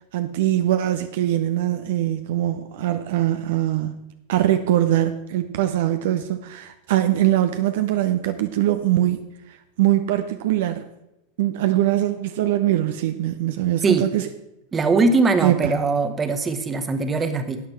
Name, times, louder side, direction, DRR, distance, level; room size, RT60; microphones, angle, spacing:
voice 1, 0.1-4.0 4.3-10.8 11.4-14.3 15.4-15.7, right 13 dB, 60° right, 8 dB, 0.8 m, -22 dB
voice 2, 14.7-17.6, right 3 dB, 20° right, 9 dB, 1.4 m, -21 dB
13.0 x 9.3 x 4.6 m, 0.89 s
figure-of-eight pair, 90°, 0 cm